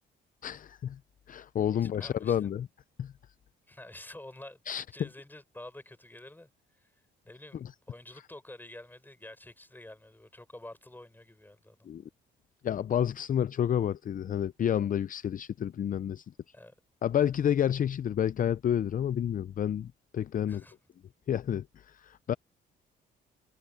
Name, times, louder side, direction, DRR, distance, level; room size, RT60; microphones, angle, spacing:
voice 1, 0.4-1.0 1.3-2.7 3.0-3.1 4.7-4.8 11.9-12.0 12.6-16.2 17.0-20.6 21.3-22.3, left 9 dB, 45° left, 0.5 m, -29 dB
voice 2, 1.7-2.5 3.7-6.9 7.2-11.9 16.5-16.7 20.5-20.8, left 1 dB, 10° left, 7.0 m, -49 dB
cardioid pair, 90°, 20 cm